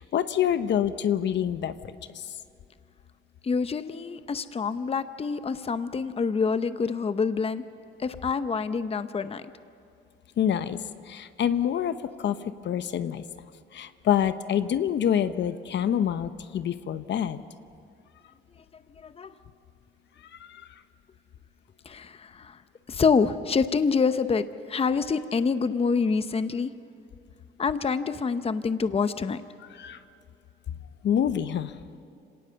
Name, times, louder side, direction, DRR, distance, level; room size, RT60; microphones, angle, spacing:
voice 1, 0.0-1.7 10.4-10.8 11.1-12.4 12.6-13.2 13.7-17.4 20.4-20.7 29.8-30.0 31.0-31.7, left 9 dB, 65° left, 12 dB, 0.9 m, -26 dB
voice 2, 3.4-7.6 8.0-9.4 19.0-19.3 21.8-22.6 22.9-26.7 27.6-29.4, left 5 dB, 30° left, 12 dB, 0.8 m, -26 dB
26.0 x 18.0 x 6.9 m, 2.6 s
cardioid pair, 90°, 20 cm